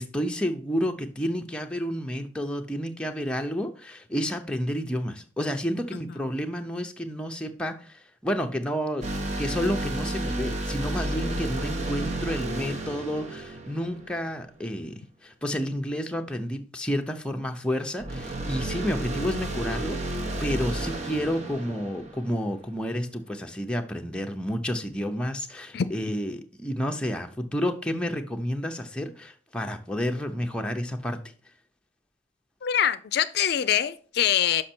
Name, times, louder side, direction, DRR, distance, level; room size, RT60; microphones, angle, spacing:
voice 1, 0.0-9.1 9.4-14.9 15.2-31.2, equal, 5° left, 3 dB, 0.6 m, -30 dB
sound 1, 9.0-14.5 18.0-22.7, right 1 dB, 40° right, 0.9 m, -32 dB
voice 2, 32.6-34.6, left 9 dB, 60° left, 13 dB, 0.4 m, -24 dB
6.3 x 5.4 x 4.4 m, 0.42 s
head